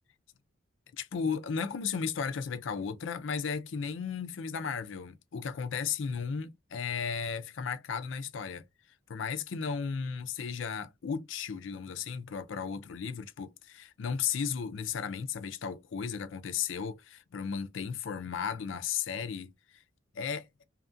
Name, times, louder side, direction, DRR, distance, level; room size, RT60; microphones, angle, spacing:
voice 1, 0.9-8.6 9.1-19.8 20.1-20.5, left 6 dB, 70° left, 0.4 m, -35 dB
2.8 x 2.4 x 2.5 m
head